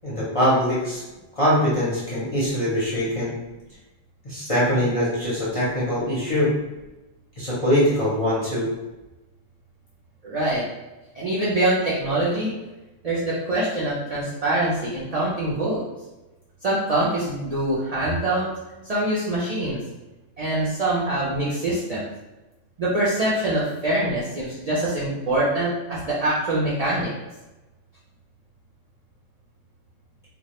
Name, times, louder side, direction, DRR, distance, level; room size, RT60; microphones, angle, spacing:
voice 1, 0.0-1.0 1.4-3.3 4.2-6.5 7.4-8.7, equal, 40° left, -8 dB, 0.5 m, -22 dB
voice 2, 10.2-10.7 11.1-12.5 13.0-15.8 16.6-18.5 18.8-19.8 20.4-22.1 22.8-27.1, right 1 dB, 65° right, -7 dB, 0.3 m, -24 dB
2.2 x 2.0 x 2.8 m, 1.1 s
omnidirectional pair, 1.3 m